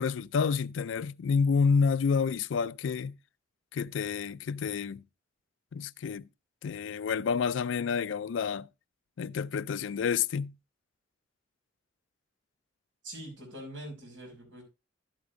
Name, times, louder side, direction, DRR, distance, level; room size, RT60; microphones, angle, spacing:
voice 1, 0.0-3.2 3.7-5.0 5.7-6.3 6.6-8.7 9.2-10.5, left 5 dB, 75° left, 0.4 m, -29 dB
voice 2, 13.0-14.6, right 1 dB, 80° right, 5.4 m, -43 dB
12.5 x 8.1 x 2.6 m
head